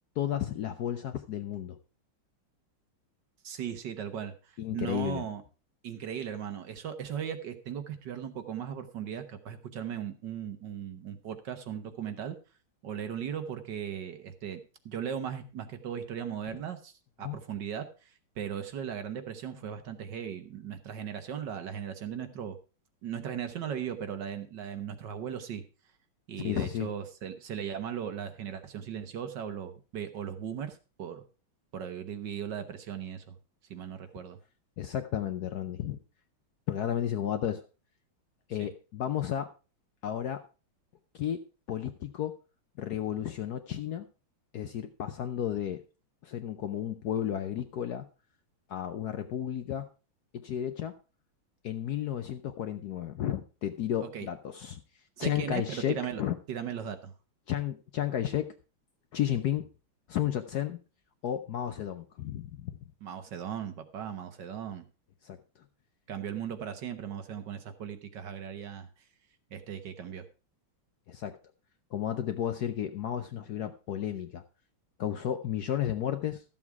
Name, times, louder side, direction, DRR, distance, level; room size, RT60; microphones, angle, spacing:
voice 1, 0.2-1.8 4.6-5.2 17.2-17.4 26.4-26.9 34.8-36.0 36.7-37.6 38.5-39.5 40.0-40.4 41.1-41.4 41.7-42.3 42.8-44.1 44.5-45.8 46.2-48.0 48.7-49.9 50.3-50.9 51.6-54.8 55.2-56.4 57.5-58.5 59.1-59.7 60.1-60.8 61.2-62.8 65.2-65.4 71.1-71.4 71.9-74.4 75.0-76.4, left 10 dB, 65° left, 8 dB, 1.0 m, -32 dB
voice 2, 3.4-5.4 5.8-12.4 12.8-14.6 14.8-16.9 17.2-22.6 23.0-25.6 26.3-31.2 31.7-33.4 33.7-34.4 38.6-38.7 54.0-54.3 55.2-56.2 56.5-57.1 63.0-64.8 66.1-68.9 69.5-70.2, right 8 dB, 60° right, 9 dB, 1.6 m, -37 dB
13.0 x 7.3 x 4.6 m, 0.34 s
omnidirectional pair, 2.3 m